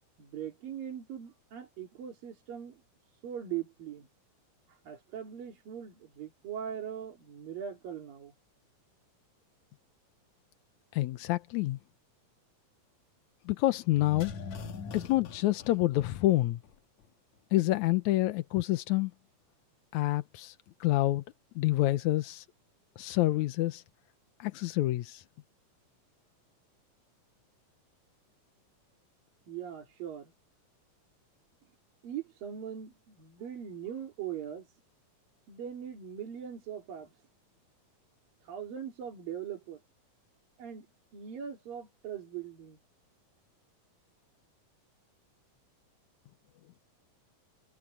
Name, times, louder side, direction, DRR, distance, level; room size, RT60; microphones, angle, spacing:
voice 1, 0.2-2.8 3.2-4.1 4.7-8.3 29.5-30.3 32.0-34.7 35.5-37.1 38.4-39.8 40.6-40.9 41.1-42.8, right 9 dB, 80° right, 4.9 m, -40 dB
voice 2, 10.9-11.8 13.5-14.3 14.9-16.6 17.5-19.1 19.9-20.6 20.8-21.2 21.6-22.5 23.0-23.8 24.4-25.2, left 17 dB, 75° left, 1.9 m, -27 dB
sound 1, 13.9-16.7 17.0-17.1, left 5 dB, 60° left, 2.7 m, -43 dB
omnidirectional pair, 4.0 m